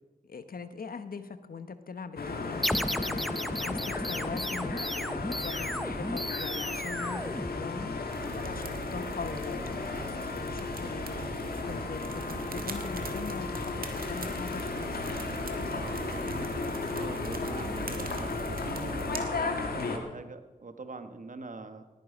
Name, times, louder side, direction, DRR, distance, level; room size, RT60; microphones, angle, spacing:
voice 1, 0.3-15.1, left 4 dB, 75° left, 11 dB, 1.0 m, -42 dB
sound 1, 2.2-20.0, left 3 dB, 90° left, 1.6 m, -35 dB
sound 2, 2.6-8.1, equal, ahead, 0.6 m, -34 dB
sound 3, 8.1-19.2, right 3 dB, 75° right, 1.5 m, -41 dB
voice 2, 16.9-21.8, right 3 dB, 60° right, 8 dB, 1.4 m, -43 dB
18.5 x 9.5 x 5.2 m, 1.1 s
cardioid pair, 45°, 15 cm